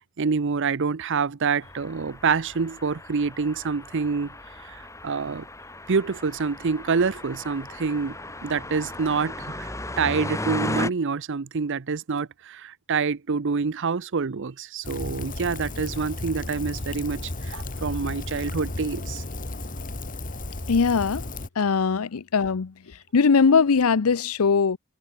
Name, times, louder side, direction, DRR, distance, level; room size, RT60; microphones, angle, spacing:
voice 1, 0.2-4.3 4.6-5.5 5.9-8.2 8.4-19.2, right 5 dB, 60° right, 0.6 m, -27 dB
sound 1, 1.6-10.9, left 1 dB, 15° left, 3.1 m, -36 dB
Rain, 14.8-21.5, left 2 dB, 40° left, 2.1 m, -34 dB
voice 2, 20.7-21.3 21.6-24.8, left 5 dB, 85° left, 0.6 m, -21 dB
head